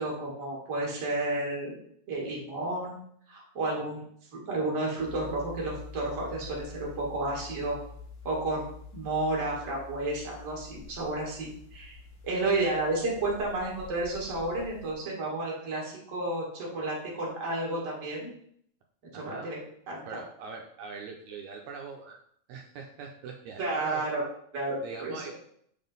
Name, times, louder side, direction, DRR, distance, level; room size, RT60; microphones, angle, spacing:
voice 1, 0.0-1.7 2.1-3.0 3.3-4.0 4.5-7.8 8.2-8.7 8.9-18.3 19.1-19.6 19.9-20.0 23.6-24.2 24.5-25.1, right 2 dB, 30° right, -3 dB, 1.7 m, -31 dB
sound 1, 5.0-15.0, left 4 dB, 55° left, 1.7 m, -47 dB
voice 2, 19.1-19.5 20.1-22.2 22.5-24.1 24.8-25.3, right 5 dB, 75° right, 1 dB, 1.9 m, -42 dB
7.1 x 3.7 x 3.9 m, 0.66 s
omnidirectional pair, 3.5 m